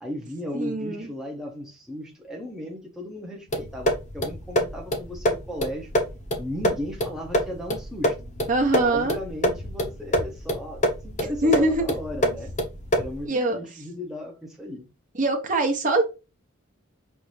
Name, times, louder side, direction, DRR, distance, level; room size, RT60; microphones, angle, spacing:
voice 1, 0.0-5.9 6.4-8.2 8.8-12.5 12.9-14.9, equal, ahead, 0.7 m, -36 dB
voice 2, 0.5-1.1 8.5-9.2 11.4-11.9 13.2-13.6 15.1-16.0, right 2 dB, 35° right, 0.8 m, -23 dB
sound 1, 3.5-13.2, equal, 35° left, 0.7 m, -27 dB
5.4 x 2.5 x 3.1 m
head